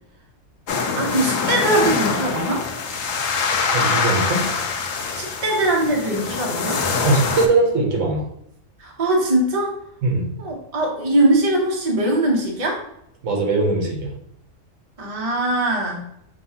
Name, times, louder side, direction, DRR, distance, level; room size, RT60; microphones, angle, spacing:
sound 1, 0.7-7.5, left 5 dB, 75° left, 1.0 m, -24 dB
voice 1, 1.0-2.6 5.1-6.8 8.8-9.7 10.4-12.8 15.0-16.0, right 1 dB, 30° right, -1 dB, 0.8 m, -21 dB
voice 2, 3.7-4.4 7.0-8.2 10.0-10.3 13.2-14.1, right 2 dB, 70° right, 0 dB, 1.3 m, -20 dB
6.4 x 2.3 x 2.8 m, 0.76 s
omnidirectional pair, 1.4 m